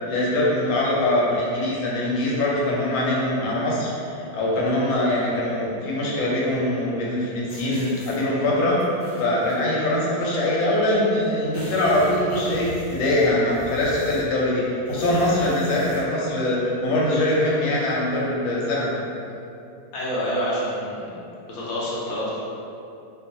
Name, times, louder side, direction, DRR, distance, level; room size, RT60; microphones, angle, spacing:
voice 1, 0.1-8.8 9.2-18.9, left 1 dB, 90° left, -5 dB, 1.4 m, -23 dB
sound 1, 7.5-8.2 8.8-9.6 10.5-10.6 10.9-11.0 11.2-14.4 14.8-16.1, equal, 35° right, 0.5 m, -40 dB
voice 2, 19.9-21.1 21.5-22.4, equal, 65° left, -7 dB, 1.0 m, -27 dB
3.0 x 2.3 x 2.6 m, 2.6 s
omnidirectional pair, 2.1 m